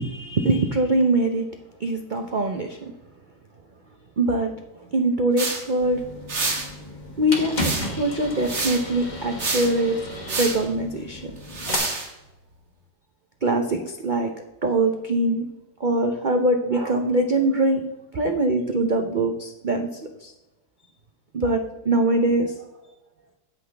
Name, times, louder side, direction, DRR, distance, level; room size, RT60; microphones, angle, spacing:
voice 1, 0.0-1.5 1.8-2.9 4.2-4.5 4.9-6.0 7.2-11.3 13.4-14.3 14.6-15.5 15.8-17.8 18.1-20.3 21.3-22.7, right 2 dB, 75° right, 5 dB, 0.4 m, -23 dB
sound 1, 5.4-5.6 6.3-6.7 7.5-8.0 8.4-8.8 9.4-9.7 10.3-10.6 11.5-12.1, right 3 dB, 45° right, 1.7 m, -27 dB
sound 2, 5.8-11.8, left 1 dB, 30° left, 1.4 m, -34 dB
16.5 x 5.8 x 3.3 m, 1.0 s
omnidirectional pair, 1.8 m